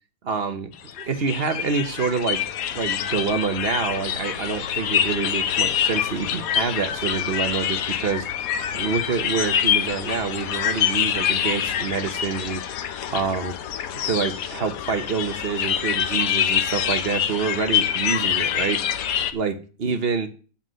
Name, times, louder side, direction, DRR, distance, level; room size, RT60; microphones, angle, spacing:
voice 1, 0.2-0.7 1.0-2.4 2.7-8.2 8.7-12.6 13.1-13.5 14.0-18.8 19.3-20.3, right 5 dB, 50° right, 9 dB, 1.1 m, -27 dB
sound 1, 0.7-19.3, left 9 dB, 85° left, 1.2 m, -25 dB
7.8 x 7.1 x 6.3 m, 0.38 s
omnidirectional pair, 1.4 m